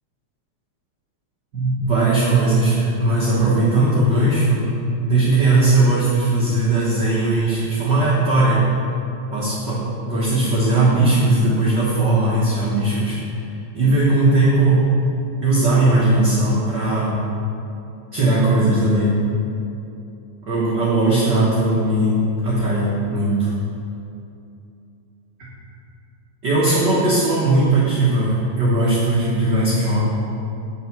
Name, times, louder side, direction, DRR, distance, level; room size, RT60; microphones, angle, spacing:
voice 1, 1.5-4.7 5.0-8.6 9.3-13.2 13.7-14.9 15.4-17.2 18.1-19.1 20.4-23.5 25.4-25.5 26.4-30.0, right 2 dB, 45° right, -8 dB, 1.7 m, -18 dB
8.9 x 6.8 x 6.0 m, 2.7 s
omnidirectional pair, 3.4 m